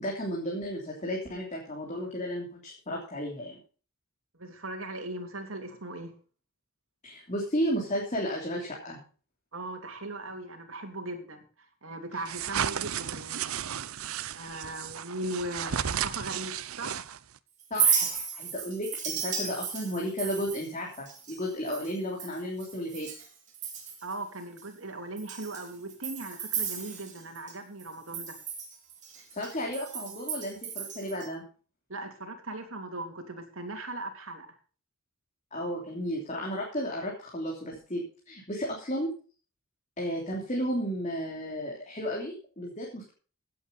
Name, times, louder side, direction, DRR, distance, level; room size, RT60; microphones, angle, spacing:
voice 1, 0.0-3.6 7.0-9.0 12.1-12.2 17.7-23.1 29.3-31.4 35.5-39.1 40.0-43.1, equal, 35° left, -2 dB, 3.3 m, -33 dB
voice 2, 4.3-6.1 9.5-11.4 11.8-13.7 14.0-17.0 24.0-28.4 31.9-34.5, right 2 dB, 70° right, 4 dB, 3.2 m, -39 dB
sound 1, 12.3-17.4, right 8 dB, 85° right, 0.7 m, -34 dB
Chink clink, 17.6-23.3 23.5-24.1 24.6-24.7 25.2-27.5 27.8-31.3, right 7 dB, 35° right, 4.1 m, -33 dB
16.5 x 8.6 x 5.3 m, 0.39 s
head